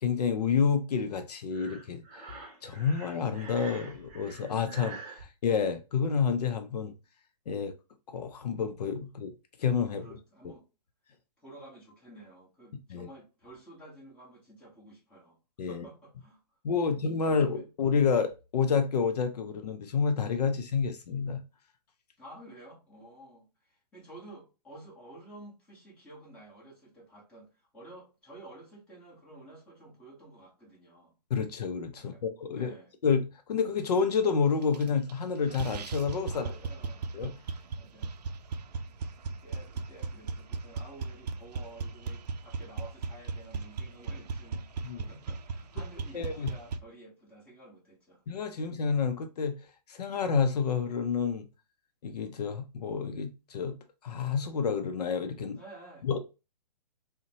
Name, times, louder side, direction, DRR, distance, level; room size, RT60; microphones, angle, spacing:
voice 1, 0.0-2.0 2.3-6.9 7.5-7.7 8.1-9.3 9.6-10.1 12.9-13.1 15.6-15.8 16.6-21.4 31.3-32.7 33.0-36.4 37.1-37.3 44.8-45.1 46.1-46.5 48.3-49.6 49.9-51.5 52.0-53.8 54.0-55.6 56.0-56.2, left 6 dB, 75° left, 0.6 m, -29 dB
Breathing, 1.5-5.2, right 4 dB, 30° right, 0.8 m, -46 dB
voice 2, 9.9-10.6 11.4-16.4 17.2-17.7 22.2-31.1 31.9-32.9 36.2-37.0 37.7-38.2 39.0-48.2 48.5-48.6 55.5-56.1, right 1 dB, 5° left, 1.2 m, -51 dB
sound 1, 34.6-35.2 35.5-46.8, right 4 dB, 75° right, 0.4 m, -37 dB
3.9 x 2.1 x 2.7 m
hypercardioid pair, 150°, 21 cm